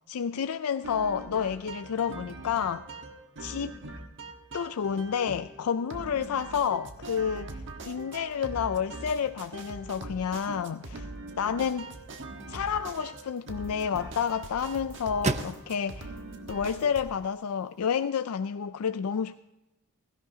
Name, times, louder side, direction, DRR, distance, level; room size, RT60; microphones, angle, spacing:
voice 1, 0.1-2.8 3.4-3.7 4.5-7.6 7.9-11.1 11.4-11.9 12.5-16.1 16.5-19.4, left 7 dB, 75° left, 0.4 m, -30 dB
sound 1, 0.8-17.0, right 2 dB, 55° right, 1.4 m, -42 dB
sound 2, 11.7-17.9, right 3 dB, 30° right, 0.6 m, -39 dB
16.5 x 16.5 x 2.8 m
head